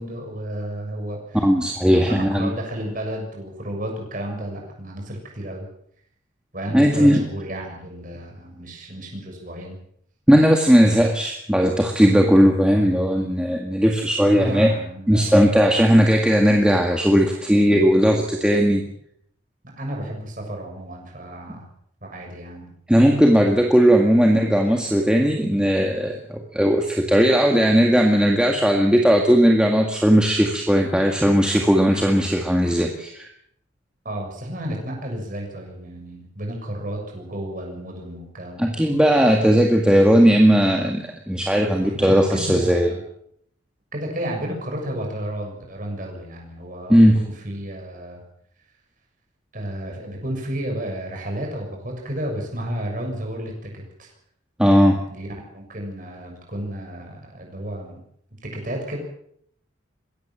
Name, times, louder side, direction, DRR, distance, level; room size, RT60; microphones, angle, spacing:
voice 1, 0.0-1.5 1.8-5.7 6.5-9.8 14.4-15.4 19.8-21.6 22.0-22.7 34.1-38.7 41.8-43.0 43.9-48.2 49.5-54.1 55.1-58.0 58.4-59.0, right 1 dB, 40° right, 1 dB, 7.0 m, -32 dB
voice 2, 1.4-2.5 6.7-7.2 10.3-14.7 15.1-18.8 22.9-33.3 38.6-42.9 46.9-47.2 54.6-55.0, equal, 5° right, 1 dB, 1.9 m, -17 dB
22.5 x 17.5 x 7.4 m, 0.70 s
head